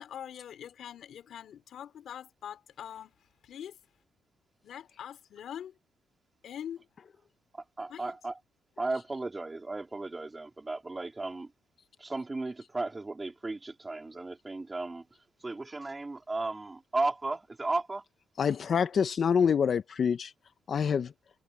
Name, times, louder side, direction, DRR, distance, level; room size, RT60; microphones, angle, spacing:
voice 1, 0.0-3.1 3.4-3.8 4.6-5.7 6.4-6.9 7.9-8.2, left 9 dB, 65° left, 3.4 m, -43 dB
voice 2, 7.8-8.3 8.8-11.5 12.0-15.0 15.4-18.0, right 2 dB, 20° right, 3.7 m, -35 dB
voice 3, 18.4-20.3 20.7-21.1, left 7 dB, 50° left, 0.8 m, -26 dB
cardioid pair, 90°, 0 cm